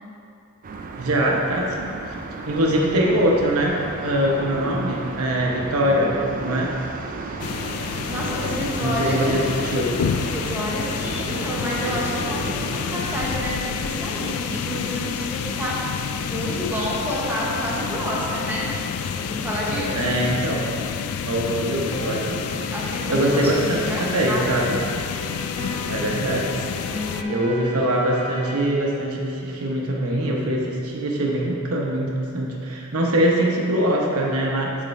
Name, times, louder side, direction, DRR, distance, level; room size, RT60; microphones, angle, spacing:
sound 1, 0.6-13.5, right 3 dB, 40° right, 0.4 m, -34 dB
voice 1, 1.0-2.0 2.5-6.7 8.8-9.9 19.9-20.7 21.2-22.7 23.1-24.8 25.9-26.6 27.3-34.8, right 1 dB, 85° right, -2 dB, 0.9 m, -23 dB
voice 2, 7.2-7.6 8.1-9.4 10.2-15.9 16.2-18.8 19.2-20.2 22.7-24.8 26.9-27.4, equal, 10° right, -6 dB, 0.9 m, -29 dB
sound 2, 7.4-27.2, left 7 dB, 80° left, 0.3 m, -29 dB
sound 3, 11.3-28.6, left 1 dB, 25° left, 1.0 m, -39 dB
8.1 x 3.7 x 4.2 m, 2.6 s
head